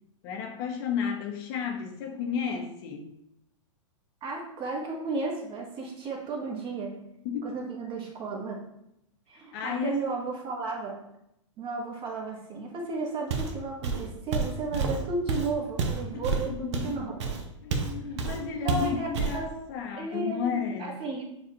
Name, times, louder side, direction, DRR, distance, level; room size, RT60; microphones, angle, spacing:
voice 1, 0.2-3.1 7.2-7.4 9.5-10.0 16.1-17.0 17.6-21.0, left 7 dB, 45° left, 4 dB, 0.7 m, -33 dB
voice 2, 4.2-7.0 7.4-8.6 9.3-10.9 11.6-17.2 18.6-19.5 20.0-21.2, right 3 dB, 30° right, -1 dB, 1.1 m, -34 dB
Walk footsteps, 13.3-13.6 13.8-17.9 18.2-18.4 18.7-19.4, right 4 dB, 60° right, 0.7 m, -29 dB
6.7 x 2.4 x 2.9 m, 0.80 s
hypercardioid pair, 115°, 17 cm